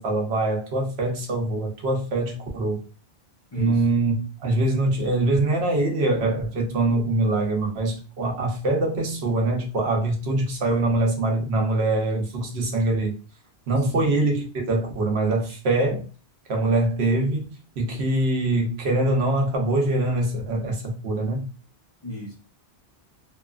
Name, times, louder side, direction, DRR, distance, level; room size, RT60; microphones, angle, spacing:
voice 1, 0.0-2.8 3.6-4.1 4.4-13.1 13.7-16.0 16.5-21.5, right 2 dB, 85° right, 1.0 m, -23 dB
voice 2, 3.5-3.9 13.8-14.2 22.0-22.3, left 1 dB, 25° left, 0.9 m, -36 dB
2.8 x 2.3 x 2.2 m
omnidirectional pair, 1.1 m